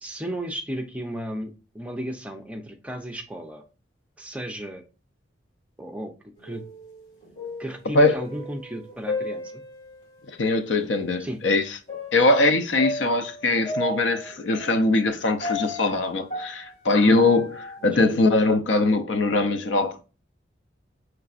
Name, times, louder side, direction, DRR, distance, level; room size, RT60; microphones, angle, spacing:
voice 1, 0.0-3.6 4.2-4.8 5.8-6.1 6.4-6.6 7.6-9.6 11.2-11.4 17.9-18.1, equal, 5° right, 0.5 m, -34 dB
sound 1, 6.4-7.0 7.2-10.0 10.8-10.9 11.9-17.9, left 1 dB, 40° left, 1.9 m, -34 dB
voice 2, 10.4-11.6 12.1-20.0, left 2 dB, 75° left, 0.6 m, -21 dB
5.8 x 3.2 x 2.4 m
head